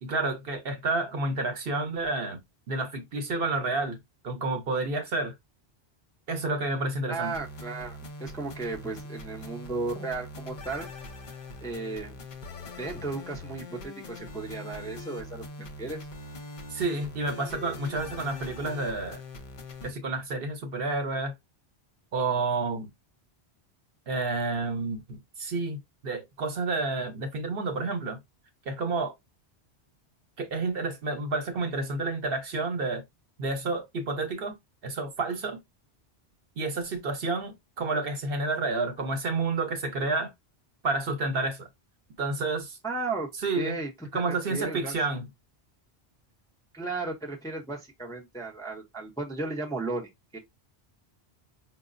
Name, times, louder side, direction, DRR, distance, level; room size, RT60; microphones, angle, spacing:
voice 1, 0.0-2.4 2.7-4.0 4.2-5.3 6.3-7.3 16.7-19.2 19.8-21.3 22.1-22.9 24.1-25.8 26.0-28.2 28.7-29.1 30.4-33.0 33.4-34.6 34.8-35.6 36.6-40.3 40.8-41.7 42.2-42.8 43.4-43.8 44.1-45.3, right 3 dB, 65° right, 1.0 m, -30 dB
voice 2, 7.1-10.9 11.6-12.1 12.8-16.0 42.8-43.3 43.5-44.9 46.7-50.4, right 3 dB, 5° left, 0.5 m, -35 dB
sound 1, 7.2-19.9, left 2 dB, 55° left, 0.7 m, -42 dB
4.7 x 2.0 x 2.5 m
omnidirectional pair, 1.1 m